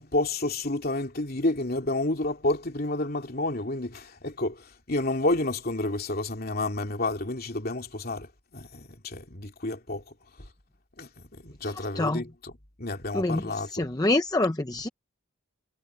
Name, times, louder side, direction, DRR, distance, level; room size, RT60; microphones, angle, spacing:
voice 1, 0.0-10.0 11.0-12.5 12.8-13.9 14.7-14.8, left 2 dB, 45° left, 2.9 m, -30 dB
voice 2, 11.6-12.2 13.1-13.4 13.7-14.9, left 2 dB, 15° left, 0.7 m, -26 dB
head